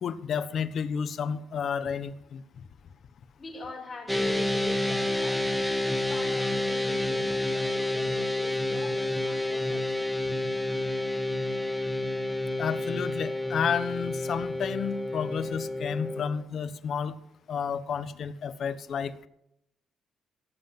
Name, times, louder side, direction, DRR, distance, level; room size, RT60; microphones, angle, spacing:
voice 1, 0.0-2.4 12.6-17.1 17.5-19.3, left 7 dB, 60° left, 13 dB, 1.1 m, -31 dB
voice 2, 3.4-10.1, left 2 dB, 35° left, 2 dB, 6.1 m, -43 dB
sound 1, 4.1-16.2, left 1 dB, ahead, 1.7 m, -29 dB
17.5 x 7.7 x 7.4 m, 0.79 s
cardioid pair, 90°, 0 cm